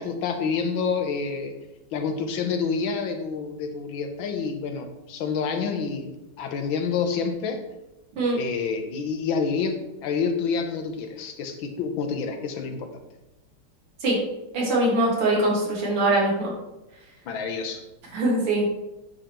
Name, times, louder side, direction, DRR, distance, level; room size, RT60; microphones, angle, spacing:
voice 1, 0.0-1.5 1.9-7.6 8.4-12.9 17.2-17.8, left 5 dB, 75° left, 5 dB, 1.5 m, -28 dB
voice 2, 14.5-16.5 18.1-18.7, right 1 dB, 85° right, -4 dB, 2.8 m, -22 dB
8.7 x 5.0 x 3.0 m, 0.97 s
omnidirectional pair, 2.3 m